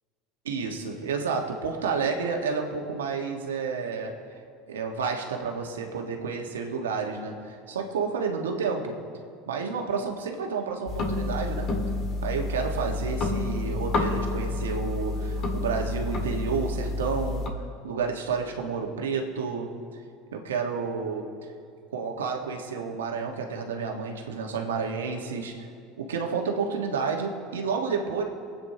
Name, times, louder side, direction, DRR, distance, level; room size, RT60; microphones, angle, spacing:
voice 1, 0.4-4.2 4.7-8.9 9.5-11.7 12.2-17.5 17.8-19.7 20.3-21.3 21.9-25.7 26.0-28.2, right 5 dB, 90° right, 2 dB, 1.4 m, -30 dB
sound 1, 10.9-17.5, left 2 dB, 50° left, 2.0 m, -29 dB
23.5 x 8.8 x 2.9 m, 2.3 s
hypercardioid pair, 80°, 0 cm